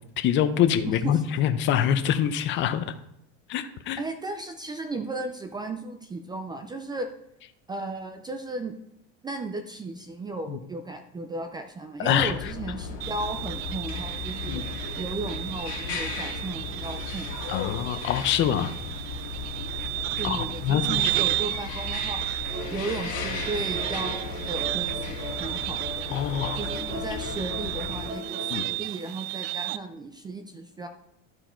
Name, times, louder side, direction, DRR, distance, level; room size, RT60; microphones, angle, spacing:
voice 1, 0.2-2.9 3.5-4.0 10.5-10.6 12.0-12.3 14.5-14.7 17.5-18.7 20.2-21.1 26.1-26.6 26.9-27.0 28.5-28.7, left 10 dB, 35° left, 11 dB, 0.6 m, -25 dB
voice 2, 4.0-7.1 7.7-8.8 9.2-14.6 15.0-17.3 20.2-22.2 22.7-25.1 25.4-25.8 26.5-30.9, right 2 dB, 15° right, 7 dB, 0.4 m, -35 dB
sound 1, 12.2-28.1, left 5 dB, 80° left, 2.2 m, -36 dB
sound 2, 13.0-29.8, right 17 dB, 75° right, 0.6 m, -33 dB
sound 3, 22.5-28.7, right 2 dB, 30° right, 1.7 m, -39 dB
12.5 x 4.8 x 4.4 m, 0.79 s
cardioid pair, 150°, 32 cm